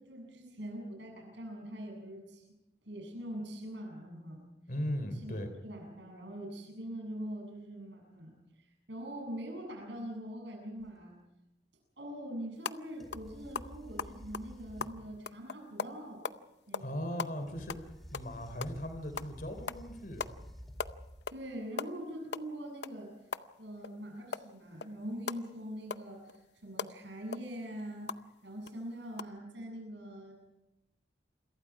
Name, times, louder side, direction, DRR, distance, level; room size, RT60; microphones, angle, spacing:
voice 1, 0.0-2.5 2.8-4.4 5.2-5.4 5.6-11.2 12.0-16.2 16.7-17.2 21.3-23.1 23.6-30.3, equal, 75° right, 1 dB, 7.4 m, -43 dB
voice 2, 4.7-5.5 16.8-17.8 18.1-20.2, equal, 50° left, 7 dB, 3.3 m, -38 dB
sound 1, 10.8-10.9 13.0-15.2 17.3-21.5, equal, ahead, 2.7 m, -51 dB
sound 2, 12.6-12.8 13.1-13.3 13.5-16.4 16.7-16.9 17.2-18.8 19.2-19.3 19.7-19.8 20.2-20.4 20.6-21.4 21.7-24.0 24.3-28.2 28.7-28.8 29.1-29.2, left 5 dB, 65° left, 0.7 m, -39 dB
28.0 x 23.0 x 4.8 m, 0.92 s
head